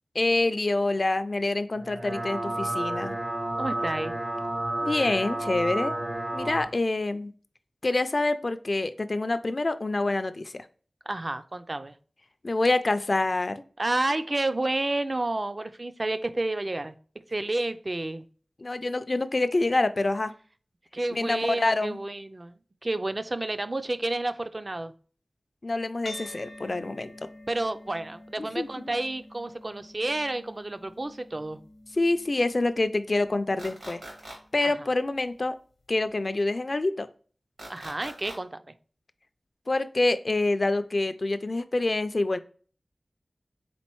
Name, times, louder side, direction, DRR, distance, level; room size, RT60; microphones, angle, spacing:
voice 1, 0.2-3.1 4.8-5.9 6.3-7.3 7.8-10.6 12.4-13.6 18.6-20.3 21.1-22.0 25.6-27.1 28.4-28.9 32.0-34.0 34.5-35.6 35.9-37.1 39.7-42.4, left 2 dB, 55° left, 11 dB, 0.3 m, -26 dB
sound 1, 1.7-6.7, right 1 dB, 65° right, 1.0 m, -31 dB
voice 2, 3.6-4.1 11.1-11.9 13.8-17.0 17.3-18.2 20.9-22.6 22.8-24.9 27.5-31.6 34.6-34.7 37.7-38.6, right 2 dB, 40° right, 11 dB, 0.4 m, -30 dB
sound 2, 26.1-34.7, left 1 dB, 75° left, 0.8 m, -48 dB
sound 3, 33.6-34.4 37.6-38.4, right 1 dB, 80° right, 2.0 m, -41 dB
4.2 x 3.8 x 3.0 m, 0.41 s
wide cardioid pair, 55°, 0 cm